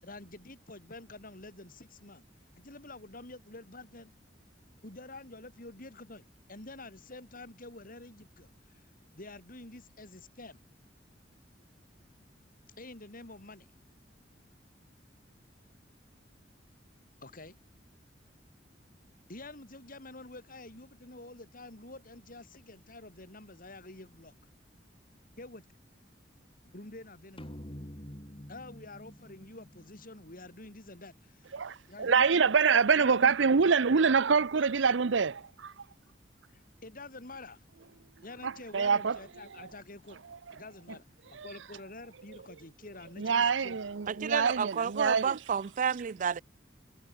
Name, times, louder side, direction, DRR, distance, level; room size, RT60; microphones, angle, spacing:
voice 1, 0.0-2.2 2.6-4.1 4.8-8.8 9.1-10.6 12.8-13.7 17.2-17.6 19.3-24.3 25.4-25.7 26.7-27.5 28.5-31.5 31.9-32.4 32.9-33.3 36.5-37.6 38.2-40.2 40.5-43.8, left 2 dB, 50° left, 4.8 m, -48 dB
sound 1, 27.4-30.9, equal, 30° left, 3.9 m, -47 dB
voice 2, 31.5-35.7 38.4-39.2 39.6-39.7 41.3-41.5 43.2-45.4, right 5 dB, 80° right, 0.7 m, -26 dB
voice 3, 44.1-46.4, right 7 dB, 45° right, 0.4 m, -31 dB
head